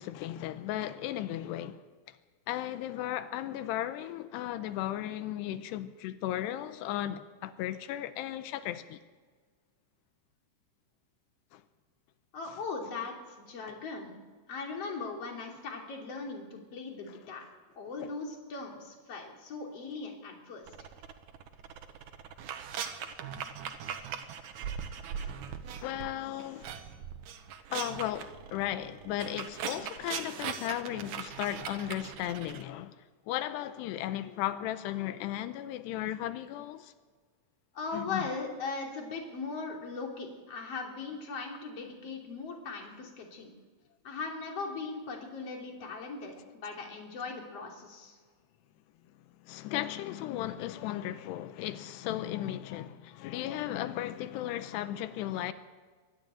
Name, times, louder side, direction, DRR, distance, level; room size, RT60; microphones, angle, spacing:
voice 1, 0.0-1.8 2.5-9.0 11.5-11.6 25.2-25.3 25.8-26.7 27.7-32.9 33.3-36.9 37.9-38.2 49.5-55.5, left 13 dB, 90° left, 2.9 m, -35 dB
voice 2, 12.3-14.2 14.5-17.4 17.8-20.7 37.7-43.5 44.0-48.2, left 4 dB, 40° left, 3.7 m, -39 dB
sound 1, 20.7-26.1 26.4-32.6, right 8 dB, 65° right, 2.1 m, -40 dB
23.5 x 12.5 x 9.0 m
omnidirectional pair, 4.7 m